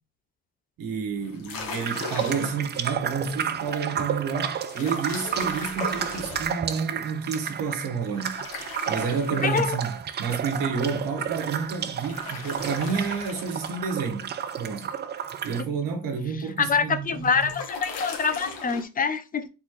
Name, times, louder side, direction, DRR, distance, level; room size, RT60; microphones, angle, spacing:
voice 1, 0.8-8.3 8.9-14.3 14.6-14.9 15.4-17.6, right 5 dB, 80° right, 1.3 m, -30 dB
sound 1, 1.2-2.7 4.6-6.5 8.2-9.9 11.7-13.9 16.8-18.8, left 4 dB, 75° left, 1.3 m, -39 dB
sound 2, 1.8-15.6, right 8 dB, 30° right, 0.4 m, -32 dB
voice 2, 9.4-9.8 16.6-19.5, left 5 dB, 25° left, 0.4 m, -25 dB
3.9 x 3.8 x 3.1 m
cardioid pair, 135°, 33 cm